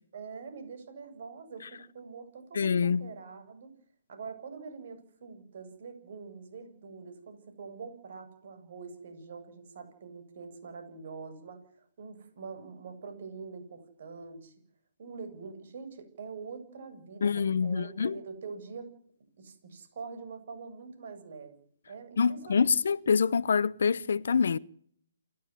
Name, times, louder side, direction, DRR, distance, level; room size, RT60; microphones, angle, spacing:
voice 1, 0.1-3.7 4.1-11.6 12.0-14.5 15.0-18.9 19.4-21.5 21.9-22.7, right 5 dB, 50° right, 7.8 m, -44 dB
voice 2, 2.5-3.1 17.2-18.1 22.2-24.6, left 6 dB, 60° left, 0.9 m, -26 dB
29.0 x 13.5 x 9.9 m
figure-of-eight pair, 140°, 0 cm